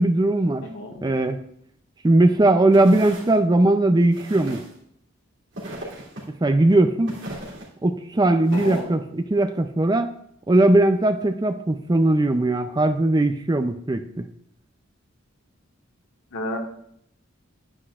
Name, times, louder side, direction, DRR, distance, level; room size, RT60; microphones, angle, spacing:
voice 1, 0.0-0.7 1.0-1.4 2.0-4.6 6.4-7.1 7.8-10.1 10.5-14.3, right 2 dB, 20° right, 9 dB, 0.5 m, -19 dB
voice 2, 0.6-1.0 8.5-8.9 16.3-16.6, left 1 dB, 75° left, 1 dB, 1.6 m, -31 dB
sound 1, 2.7-3.3 4.1-4.8 5.5-6.3 7.1-7.7 8.4-8.8, right 1 dB, 60° right, 3.0 m, -37 dB
9.9 x 9.9 x 2.4 m, 0.70 s
head